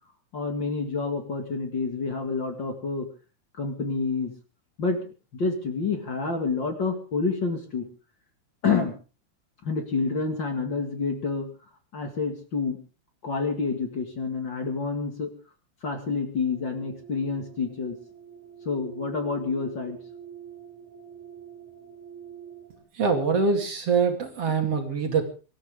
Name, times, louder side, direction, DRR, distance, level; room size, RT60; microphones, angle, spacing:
voice 1, 0.3-3.1 3.6-4.3 4.8-5.0 5.3-7.9 8.6-8.9 9.6-11.5 11.9-12.8 13.2-15.3 15.8-18.0 18.7-20.0, left 4 dB, 40° left, 5 dB, 2.5 m, -28 dB
sound 1, 16.4-22.8, right 9 dB, 5° right, 5.7 m, -45 dB
voice 2, 22.9-25.2, right 5 dB, 55° right, 4 dB, 3.4 m, -24 dB
25.0 x 13.5 x 3.7 m, 0.35 s
omnidirectional pair, 3.4 m